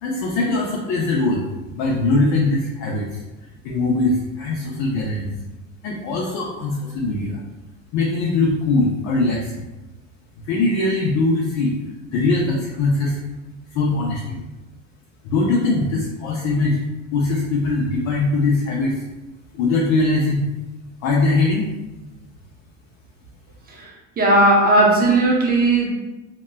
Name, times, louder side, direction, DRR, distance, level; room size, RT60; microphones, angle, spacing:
voice 1, 0.0-3.2 3.6-5.3 5.8-7.4 7.9-9.7 10.5-11.7 12.1-13.2 13.7-14.4 15.2-16.8 17.1-19.0 19.5-20.4 21.0-21.7, left 2 dB, 55° left, -3 dB, 0.5 m, -21 dB
voice 2, 24.2-25.9, right 2 dB, 25° right, -2 dB, 0.7 m, -16 dB
3.0 x 2.1 x 2.2 m, 1.0 s
supercardioid pair, 95°, 36 cm